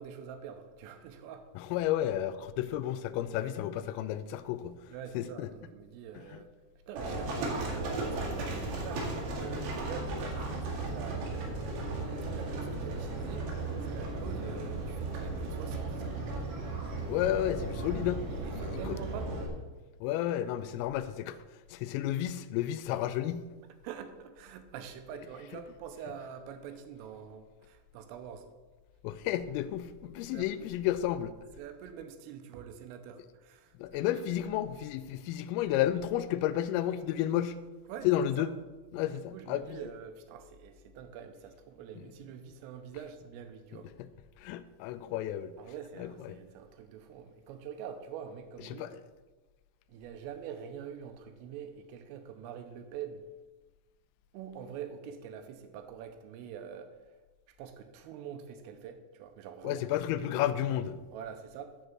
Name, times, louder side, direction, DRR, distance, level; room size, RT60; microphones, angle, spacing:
voice 1, 0.0-1.5 4.9-6.5 6.9-11.6 12.3-16.1 18.3-19.3 23.8-28.5 30.3-30.5 31.6-34.6 37.9-38.1 38.4-38.5 38.9-43.9 45.6-48.9 49.9-53.2 54.3-57.0 57.5-59.9 60.2-60.5 61.1-61.8, right 8 dB, 85° right, 8 dB, 3.4 m, -45 dB
voice 2, 1.7-4.8 5.2-5.5 17.1-18.2 18.5-19.0 20.0-21.4 21.7-23.4 29.0-31.3 33.8-37.6 38.0-38.5 38.9-39.8 44.4-45.5 46.0-46.4 48.8-48.9 59.6-60.9, left 12 dB, 90° left, 13 dB, 3.3 m, -31 dB
Livestock farm animals working animals, 7.0-19.5, right 2 dB, 65° right, 3.9 m, -35 dB
8.0 x 6.5 x 7.4 m, 1.2 s
omnidirectional pair, 5.8 m